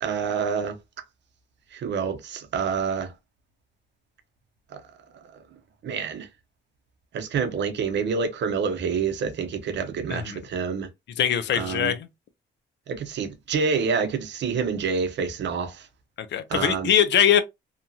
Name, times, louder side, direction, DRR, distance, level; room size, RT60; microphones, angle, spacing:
voice 1, 0.0-0.8 1.7-3.1 4.7-4.8 5.8-6.3 7.1-10.9 11.5-11.9 12.9-15.9 16.5-16.9, right 5 dB, 65° right, 0.8 m, -27 dB
voice 2, 10.1-10.4 11.2-12.1 16.2-17.4, left 9 dB, 65° left, 0.6 m, -22 dB
2.9 x 2.4 x 2.6 m
cardioid pair, 90°, 20 cm